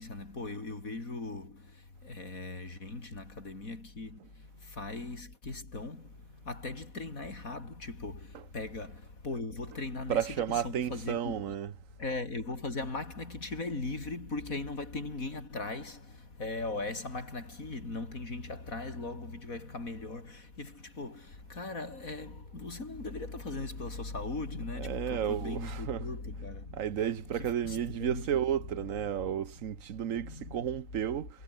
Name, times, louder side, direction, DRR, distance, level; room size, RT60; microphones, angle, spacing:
voice 1, 0.0-11.4 11.9-28.7 29.0-29.3 29.9-30.8, left 3 dB, 55° left, 4.7 m, -39 dB
voice 2, 10.1-11.7 24.8-26.0 26.8-31.3, right 9 dB, 55° right, 1.3 m, -32 dB
omnidirectional pair, 1.7 m